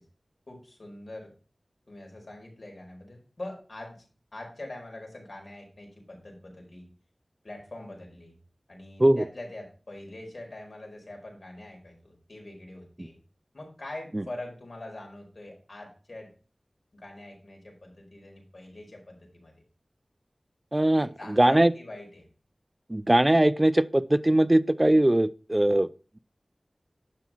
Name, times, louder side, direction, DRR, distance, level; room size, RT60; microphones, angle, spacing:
voice 1, 0.5-1.3 1.9-4.0 4.3-6.9 7.4-8.3 8.7-13.2 13.5-16.3 16.9-19.5 21.0-22.3, left 1 dB, 65° left, 5.0 m, -43 dB
voice 2, 20.7-21.7 22.9-25.9, right 1 dB, 25° right, 0.5 m, -21 dB
11.0 x 6.0 x 4.5 m
wide cardioid pair, 55°, 0 cm